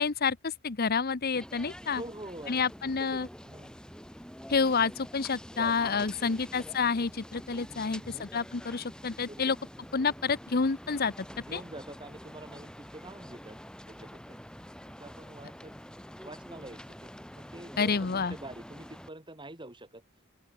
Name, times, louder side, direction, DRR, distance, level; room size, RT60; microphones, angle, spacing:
voice 1, 0.0-2.0 2.5-3.3 4.5-9.6 9.9-11.1 11.5-11.6 17.8-18.3, left 5 dB, 45° left, 0.8 m, -29 dB
sound 1, 1.3-19.1, equal, 5° left, 2.4 m, -47 dB
voice 2, 1.8-3.8 5.5-6.4 7.7-8.3 9.3-9.4 11.3-13.6 13.9-14.4 14.9-15.8 16.2-20.0, right 1 dB, 25° right, 5.6 m, -46 dB
open air
head